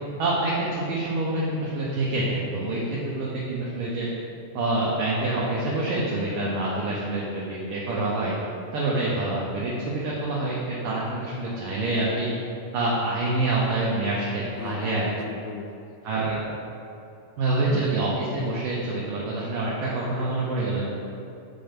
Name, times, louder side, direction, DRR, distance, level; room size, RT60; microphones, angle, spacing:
voice 1, 0.2-4.1 4.5-8.3 8.7-12.3 12.7-15.1 16.0-16.4 17.4-20.8, right 2 dB, 75° right, -6 dB, 2.0 m, -26 dB
voice 2, 14.6-15.9 17.7-18.0, left 7 dB, 85° left, 6 dB, 2.7 m, -38 dB
6.9 x 6.0 x 5.2 m, 2.6 s
omnidirectional pair, 5.1 m